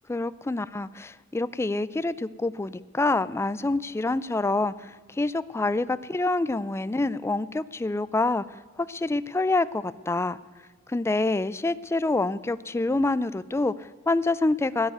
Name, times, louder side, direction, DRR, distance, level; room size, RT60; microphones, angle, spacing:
voice 1, 0.1-10.4 10.9-14.9, left 2 dB, 15° left, 16 dB, 0.3 m, -27 dB
16.5 x 7.2 x 9.6 m, 1.5 s
head